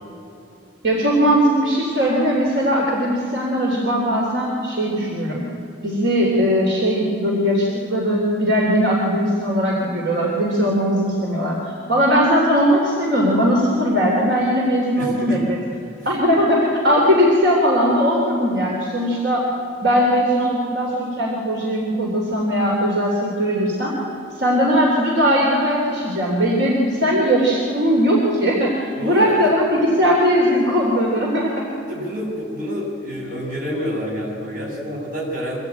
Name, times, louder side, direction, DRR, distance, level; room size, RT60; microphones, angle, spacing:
voice 1, 0.8-5.4 5.8-15.6 16.1-19.4 19.8-23.9 24.3-31.7, equal, 70° right, -3 dB, 3.4 m, -19 dB
voice 2, 15.0-15.4 16.0-16.1 29.0-29.5 31.9-35.6, equal, 45° right, -3 dB, 7.1 m, -28 dB
25.0 x 16.0 x 9.0 m, 2.8 s
head